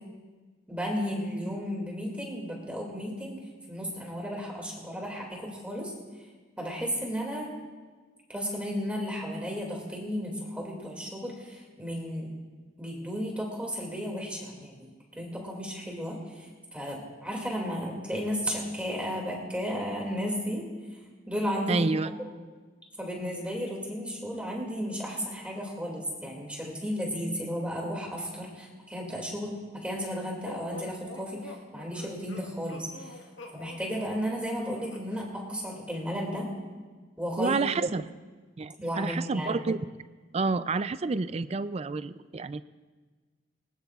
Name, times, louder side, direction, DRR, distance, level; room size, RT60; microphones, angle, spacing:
voice 1, 0.7-3.4 3.7-5.9 6.6-7.6 8.3-12.3 12.8-14.7 15.1-20.7 21.3-21.9 22.2-22.3 23.0-33.2 33.5-36.5 37.2-37.9 38.8-39.6, equal, 5° right, -1 dB, 2.4 m, -34 dB
voice 2, 21.7-22.1 37.4-38.1 38.6-39.9 40.3-42.6, right 4 dB, 35° right, 14 dB, 0.4 m, -29 dB
sound 1, 30.4-35.3, left 2 dB, 85° left, 1.4 m, -46 dB
20.0 x 20.0 x 2.4 m, 1.4 s
head